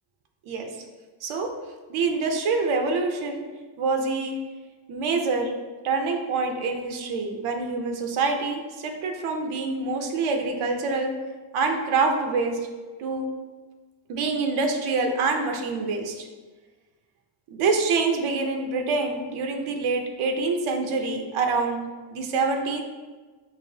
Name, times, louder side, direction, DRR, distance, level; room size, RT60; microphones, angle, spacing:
voice 1, 1.9-3.4 3.8-4.4 4.9-5.5 5.8-11.1 11.5-12.6 13.0-13.3 14.1-16.3 17.5-21.8 22.1-22.8, right 4 dB, 85° right, 3 dB, 0.6 m, -26 dB
4.9 x 2.6 x 2.7 m, 1.3 s
cardioid pair, 95°, 48 cm